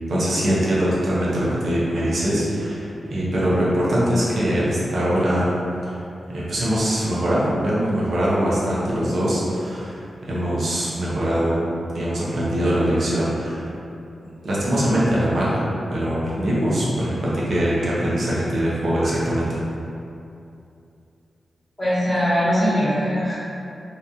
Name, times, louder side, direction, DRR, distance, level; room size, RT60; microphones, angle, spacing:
voice 1, 0.1-5.6 5.8-6.0 6.3-11.6 11.9-13.7 14.4-15.6 15.9-19.6, equal, 60° right, -7 dB, 0.7 m, -22 dB
voice 2, 21.8-23.3, equal, 10° left, -14 dB, 1.3 m, -21 dB
2.9 x 2.6 x 2.3 m, 2.7 s
wide cardioid pair, 125°, 0 cm